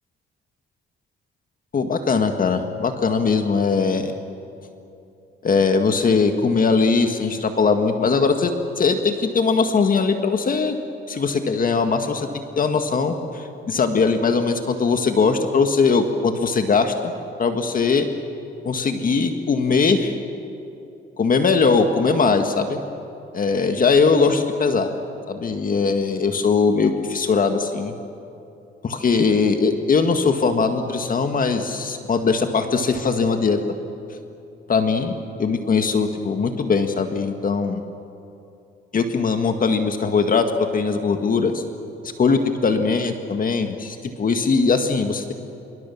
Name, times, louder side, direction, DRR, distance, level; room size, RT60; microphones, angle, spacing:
voice 1, 1.7-4.1 5.4-10.8 11.1-12.3 12.6-17.1 17.4-18.1 18.6-20.1 21.2-22.8 23.3-24.9 25.3-28.0 28.9-33.6 34.7-35.1 35.4-37.8 38.9-41.6 42.0-45.3, left 4 dB, 45° left, 6 dB, 1.8 m, -20 dB
26.0 x 24.0 x 7.2 m, 2.7 s
cardioid pair, 90°, 20 cm